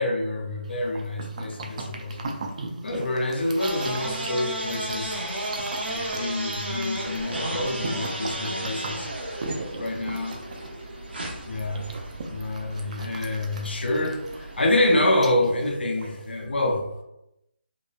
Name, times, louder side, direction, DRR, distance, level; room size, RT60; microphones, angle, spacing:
voice 1, 0.0-2.3 2.8-5.2 5.9-9.1 9.8-10.4 11.4-12.0 12.3-16.9, left 1 dB, 75° left, 1 dB, 0.5 m, -27 dB
sound 1, 0.6-16.4, right 3 dB, 40° right, 0.3 m, -39 dB
sound 2, 3.6-15.1, right 1 dB, 75° right, 0.8 m, -34 dB
2.9 x 2.1 x 2.2 m, 0.85 s
figure-of-eight pair, 165°, 6 cm